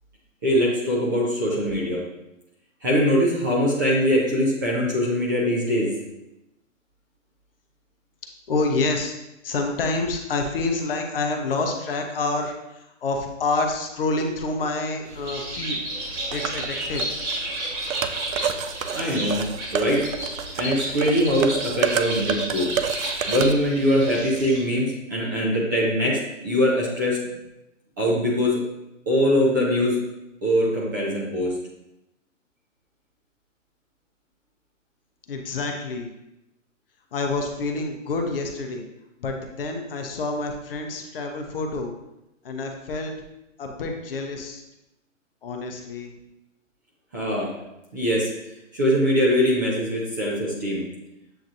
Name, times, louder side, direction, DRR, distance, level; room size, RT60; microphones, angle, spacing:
voice 1, 0.4-2.0 2.8-5.9 18.9-19.5 19.7-20.0 20.6-22.7 23.3-27.2 28.0-28.6 29.1-30.0 30.4-31.5 47.1-47.5 47.9-48.3 48.7-50.8, equal, 15° right, -5 dB, 0.5 m, -22 dB
voice 2, 8.5-9.1 9.4-15.8 16.3-17.0 35.3-36.1 37.1-38.8 39.2-41.9 42.4-43.1 43.6-44.6 45.4-46.1, left 3 dB, 45° left, 3 dB, 0.7 m, -27 dB
Bird, 15.0-24.8, right 1 dB, 55° right, 1.4 m, -32 dB
sound 1, 16.3-23.5, right 7 dB, 85° right, 0.5 m, -30 dB
7.7 x 2.6 x 2.4 m, 0.91 s
hypercardioid pair, 145°, 39 cm